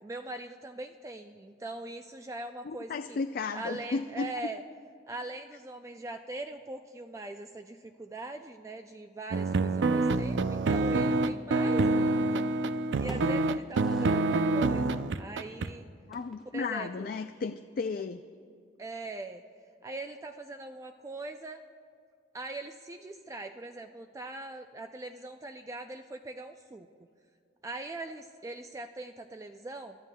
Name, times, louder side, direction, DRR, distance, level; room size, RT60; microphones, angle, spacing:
voice 1, 0.0-3.2 3.5-4.6 5.1-12.5 13.0-15.8 16.5-17.1 18.8-19.4 19.8-21.6 22.3-26.9 27.6-30.0, right 2 dB, 15° right, 6 dB, 0.3 m, -41 dB
voice 2, 2.6-4.5 16.1-18.2, left 4 dB, 55° left, 8 dB, 0.4 m, -34 dB
sound 1, 9.3-15.7, right 2 dB, 85° right, 0.4 m, -27 dB
sound 2, 13.0-14.5 14.7-14.8 16.1-16.8, equal, ahead, 1.0 m, -49 dB
29.0 x 12.5 x 2.3 m, 2.3 s
head